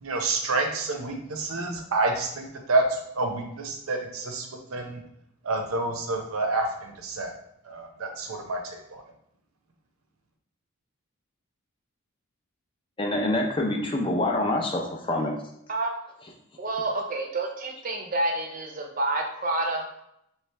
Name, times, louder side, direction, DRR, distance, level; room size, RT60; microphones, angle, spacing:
voice 1, 0.0-2.8 3.2-4.5 4.7-5.0 5.4-6.7 7.0-7.3 7.7-8.6 8.9-9.0, right 3 dB, 80° right, 4 dB, 0.7 m, -28 dB
voice 2, 13.0-15.3, left 1 dB, 25° left, 1 dB, 0.4 m, -26 dB
voice 3, 16.6-20.0, right 2 dB, 40° right, 3 dB, 0.6 m, -29 dB
3.3 x 3.1 x 3.3 m, 0.76 s
head